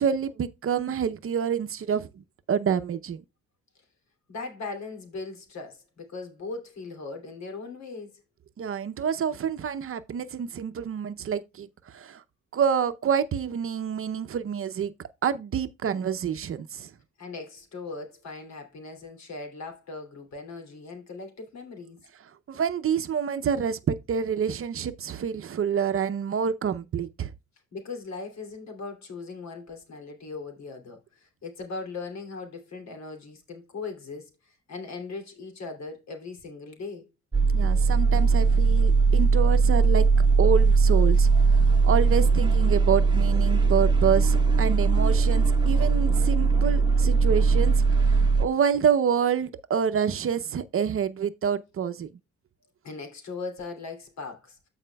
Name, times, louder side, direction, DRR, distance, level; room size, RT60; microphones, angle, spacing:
voice 1, 0.0-3.2 8.6-12.2 12.5-14.9 15.2-16.9 22.2-27.3 37.5-40.1 40.4-52.1, right 7 dB, 45° right, 0.7 m, -27 dB
voice 2, 4.3-8.2 17.2-22.0 27.7-37.1 52.8-54.7, left 4 dB, 60° left, 2.9 m, -39 dB
sound 1, 37.3-48.5, right 4 dB, 15° right, 1.0 m, -20 dB
13.5 x 4.9 x 2.3 m
cardioid pair, 90°, 30 cm